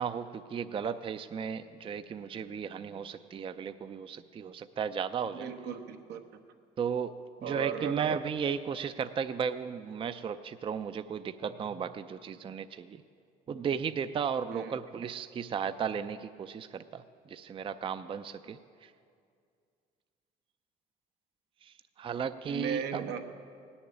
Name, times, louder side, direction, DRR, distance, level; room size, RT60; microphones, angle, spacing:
voice 1, 0.0-5.5 6.8-13.0 13.5-17.0 17.3-18.9 21.6-23.2, right 7 dB, 30° right, 11 dB, 0.4 m, -35 dB
voice 2, 5.4-6.2 7.4-8.0 14.5-14.8 22.5-23.2, right 8 dB, 85° right, 6 dB, 1.2 m, -36 dB
17.0 x 7.1 x 9.9 m, 2.3 s
cardioid pair, 110°, 17 cm